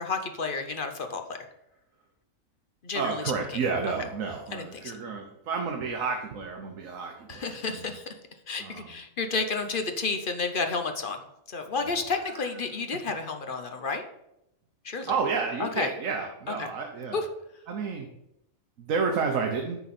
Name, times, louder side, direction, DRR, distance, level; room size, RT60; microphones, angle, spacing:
voice 1, 0.0-1.4 2.8-3.2 4.5-4.9 7.3-8.0 8.5-11.2 11.5-14.0 14.8-15.1 15.6-15.9 16.6-16.7 17.1-17.3, left 4 dB, 45° left, 6 dB, 0.9 m, -31 dB
voice 2, 2.9-7.9 8.6-9.0 11.9-12.5 15.1-17.2 17.7-18.1 18.8-19.8, right 5 dB, 75° right, 2 dB, 1.3 m, -31 dB
9.7 x 6.2 x 4.2 m, 0.84 s
omnidirectional pair, 1.4 m